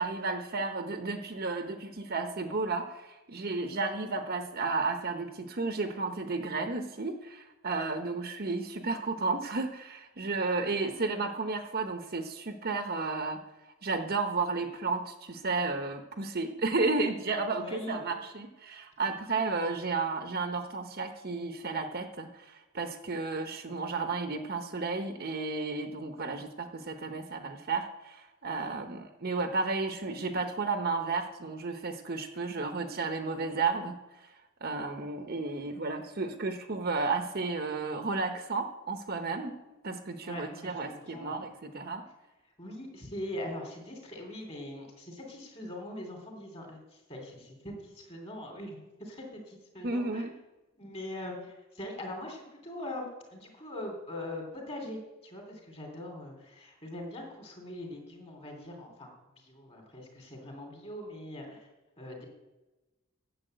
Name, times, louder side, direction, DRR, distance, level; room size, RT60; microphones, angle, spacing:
voice 1, 0.0-13.4 13.8-34.0 34.2-34.3 34.6-39.5 39.8-42.0 49.8-50.3, right 3 dB, 50° right, 6 dB, 0.9 m, -33 dB
voice 2, 17.5-18.0 40.2-41.5 42.6-50.3 50.8-61.7 62.0-62.3, left 1 dB, 30° left, 2 dB, 3.1 m, -42 dB
10.0 x 7.2 x 7.8 m, 1.1 s
head